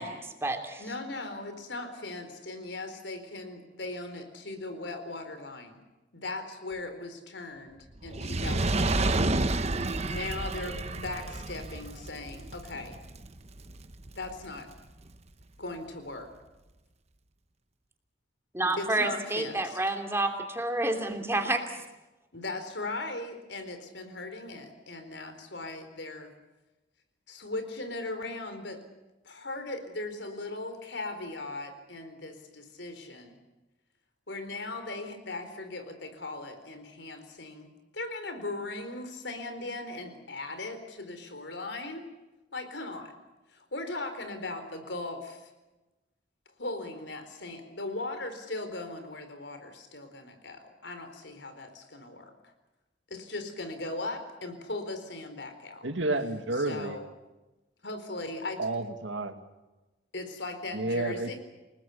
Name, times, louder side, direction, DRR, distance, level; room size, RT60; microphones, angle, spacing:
voice 1, 0.0-0.8 18.5-21.6, right 2 dB, 15° right, 5 dB, 3.0 m, -29 dB
voice 2, 0.8-5.8 6.1-9.3 9.7-13.0 14.1-14.7 15.6-16.3 18.8-19.8 22.3-26.3 27.3-28.8 29.2-33.3 34.3-37.7 37.9-42.1 42.5-43.1 43.5-45.5 46.6-52.5 53.1-55.9 56.6-57.1 57.8-58.6 60.1-61.4, left 2 dB, 70° left, 8 dB, 4.3 m, -38 dB
Fire, 8.0-14.5 15.1-15.2, right 2 dB, 35° right, 1.1 m, -30 dB
voice 3, 55.8-57.0 58.6-59.4 60.7-61.3, right 2 dB, 90° right, 7 dB, 2.2 m, -30 dB
29.5 x 19.0 x 7.1 m, 1.1 s
head